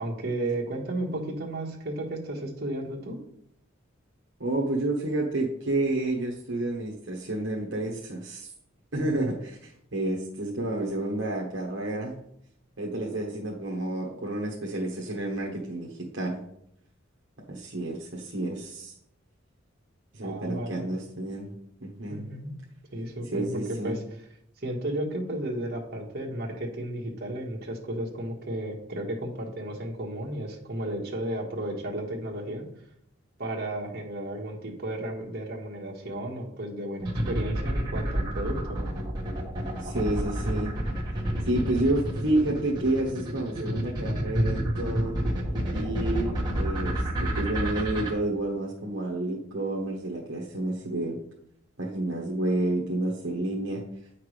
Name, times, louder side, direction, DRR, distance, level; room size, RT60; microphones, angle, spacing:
voice 1, 0.0-3.2 20.2-20.9 22.1-22.5 22.9-24.0 24.6-32.6 33.4-38.9, right 1 dB, 50° right, -1 dB, 1.5 m, -33 dB
voice 2, 4.4-8.5 8.9-12.2 12.8-16.4 17.5-18.9 20.1-22.3 23.3-24.0 39.8-40.7 41.4-45.2 45.7-51.2 51.8-53.8, right 1 dB, 65° right, -2 dB, 1.1 m, -30 dB
sound 1, 37.0-48.1, right 1 dB, 20° right, 1.5 m, -29 dB
8.9 x 5.8 x 3.3 m, 0.73 s
head